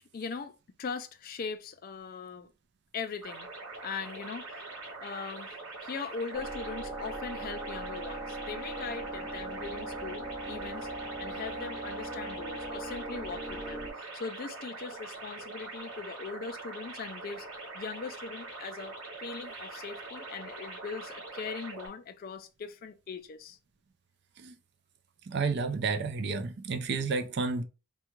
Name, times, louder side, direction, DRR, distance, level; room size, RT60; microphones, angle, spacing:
voice 1, 0.1-2.5 2.9-3.5 3.8-4.6 5.0-5.5 5.8-10.9 11.2-17.5 17.7-23.6, left 5 dB, 40° left, 0.3 m, -40 dB
sound 1, 3.2-21.9, right 3 dB, 75° right, 1.3 m, -43 dB
sound 2, 6.3-13.9, right 1 dB, 10° right, 1.1 m, -39 dB
voice 2, 25.3-27.6, right 4 dB, 50° right, 0.4 m, -31 dB
3.4 x 2.2 x 3.0 m
head